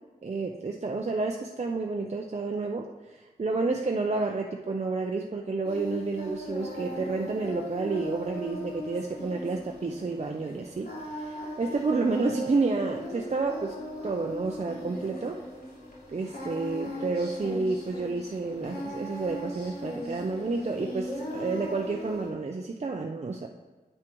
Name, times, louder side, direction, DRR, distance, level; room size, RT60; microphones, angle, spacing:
voice 1, 0.2-10.9 11.1-13.8 14.0-15.4 16.1-23.5, right 3 dB, 45° right, 1 dB, 0.6 m, -30 dB
Singing, 5.6-22.3, equal, 85° left, 2.6 m, -38 dB
9.6 x 8.9 x 3.0 m, 1.3 s
wide cardioid pair, 95°, 16 cm